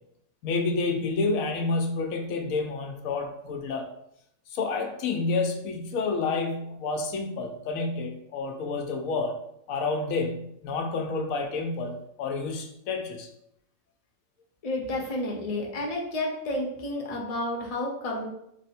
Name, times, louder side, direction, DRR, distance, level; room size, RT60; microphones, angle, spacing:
voice 1, 0.4-3.9 4.5-9.4 9.7-13.3, left 3 dB, 80° left, 4 dB, 1.0 m, -29 dB
voice 2, 14.6-18.3, left 1 dB, 35° left, -1 dB, 0.6 m, -31 dB
3.3 x 2.1 x 4.2 m, 0.76 s
omnidirectional pair, 1.4 m